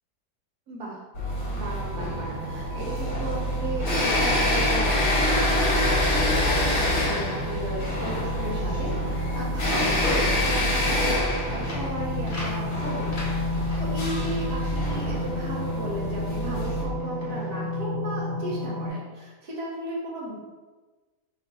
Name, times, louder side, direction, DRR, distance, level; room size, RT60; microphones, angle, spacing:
voice 1, 0.7-1.0 1.5-13.2 13.8-20.4, right 1 dB, 70° right, -4 dB, 1.2 m, -35 dB
sound 1, 1.1-16.8, left 1 dB, 55° left, 1.2 m, -26 dB
sound 2, 1.3-18.9, left 1 dB, 35° right, 1.1 m, -33 dB
sound 3, 8.5-15.9 16.1-17.6, left 1 dB, 40° left, 0.8 m, -38 dB
3.2 x 2.9 x 3.9 m, 1.3 s
omnidirectional pair, 1.8 m